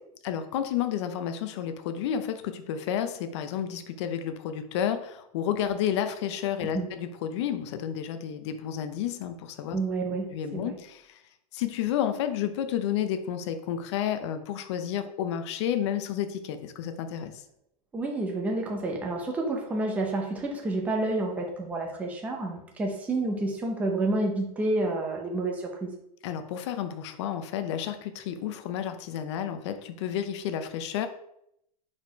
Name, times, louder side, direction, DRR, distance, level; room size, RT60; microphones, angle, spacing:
voice 1, 0.2-9.8 10.3-11.2 11.5-17.3 26.2-31.1, left 9 dB, 45° left, 9 dB, 0.7 m, -31 dB
voice 2, 9.7-10.8 17.9-25.9, right 2 dB, 5° right, 0 dB, 0.7 m, -29 dB
4.8 x 4.3 x 4.6 m, 0.77 s
supercardioid pair, 165°, 20 cm